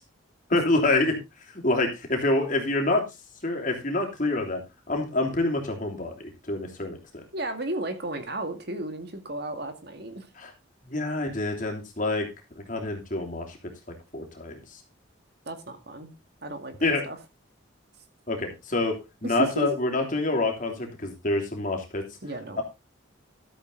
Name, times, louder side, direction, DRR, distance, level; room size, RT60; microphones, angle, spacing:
voice 1, 0.5-1.2 1.5-3.0 3.4-4.6 4.9-7.2 10.4-10.5 10.8-12.3 12.7-13.6 14.1-14.8 16.8-17.0 18.3-22.0 22.6-22.7, left 2 dB, 40° left, 2 dB, 3.1 m, -27 dB
voice 2, 7.3-10.3 15.5-16.1 16.4-17.2 19.2-19.7 22.2-22.6, right 1 dB, 55° right, 7 dB, 2.2 m, -33 dB
13.5 x 8.0 x 3.9 m, 0.26 s
head